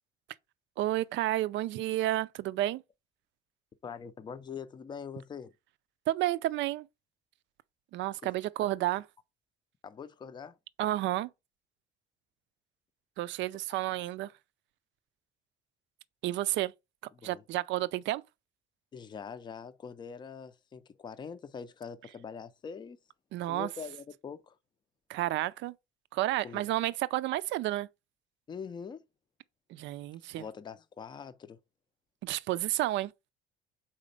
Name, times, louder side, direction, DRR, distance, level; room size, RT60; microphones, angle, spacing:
voice 1, 0.8-2.8 6.1-6.9 7.9-9.0 10.8-11.3 13.2-14.3 16.2-16.7 17.2-18.2 23.3-23.7 25.1-25.7 26.1-27.9 29.7-30.4 32.2-33.1, right 15 dB, 65° right, 0.4 m, -31 dB
voice 2, 3.8-5.5 8.2-8.3 9.8-10.6 13.7-13.8 17.2-17.4 18.9-23.0 23.5-24.6 26.4-26.7 28.5-29.0 30.4-31.6, left 6 dB, 20° left, 0.5 m, -43 dB
4.9 x 4.2 x 5.2 m
cardioid pair, 165°, 21 cm